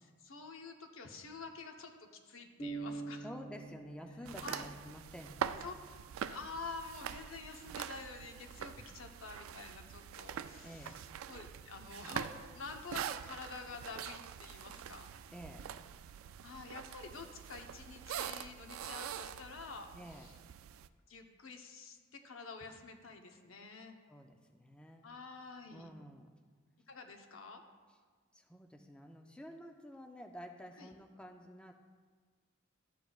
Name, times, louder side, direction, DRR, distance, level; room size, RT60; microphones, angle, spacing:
voice 1, 0.2-3.3 4.4-4.7 5.6-5.7 6.2-11.0 11.3-15.1 16.4-20.3 21.1-23.9 25.0-25.9 26.9-27.6 30.8-30.9, left 4 dB, 70° left, 4 dB, 0.9 m, -48 dB
sound 1, 2.6-6.4, right 3 dB, 35° left, 1.0 m, -46 dB
voice 2, 3.2-5.7 10.6-11.0 15.3-15.7 19.9-20.3 24.1-25.1 25.7-26.4 28.3-31.7, equal, 5° left, 3 dB, 0.4 m, -50 dB
sound 2, 4.2-20.9, right 9 dB, 75° right, 0.3 m, -44 dB
13.0 x 8.0 x 2.3 m, 1.5 s
head